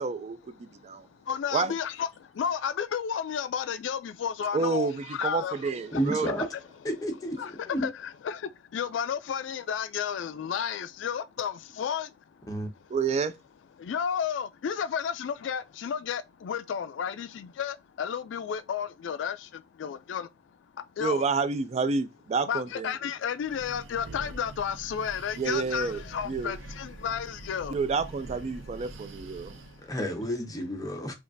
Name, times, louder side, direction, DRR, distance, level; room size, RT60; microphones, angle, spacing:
voice 1, 0.0-1.1 1.5-1.7 4.5-6.3 12.9-13.3 21.0-22.9 25.4-26.5 27.7-29.5, right 4 dB, 35° right, 0.3 m, -29 dB
voice 2, 0.6-6.0 7.4-12.1 12.7-13.0 13.8-21.2 22.5-27.8 28.8-29.9, left 8 dB, 80° left, 0.3 m, -33 dB
voice 3, 5.9-6.4 6.8-7.4 7.7-7.9 12.5-12.7 29.9-31.1, equal, 20° left, 0.8 m, -30 dB
Breathing, 23.3-29.9, right 2 dB, 90° right, 0.5 m, -44 dB
5.1 x 2.4 x 2.6 m
head